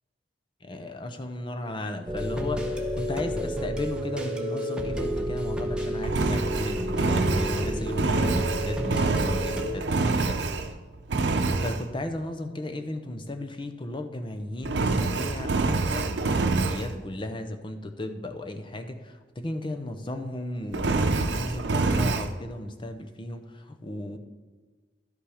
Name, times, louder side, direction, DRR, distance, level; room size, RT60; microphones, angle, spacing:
voice 1, 0.6-10.4 11.6-24.2, left 1 dB, 25° left, 7 dB, 0.7 m, -35 dB
sound 1, 2.1-9.7, equal, 5° right, 0.9 m, -30 dB
Engine, 6.0-10.8 11.1-11.8 14.6-16.9 20.7-22.3, right 3 dB, 80° right, 0.7 m, -26 dB
12.0 x 5.7 x 5.0 m, 1.3 s
head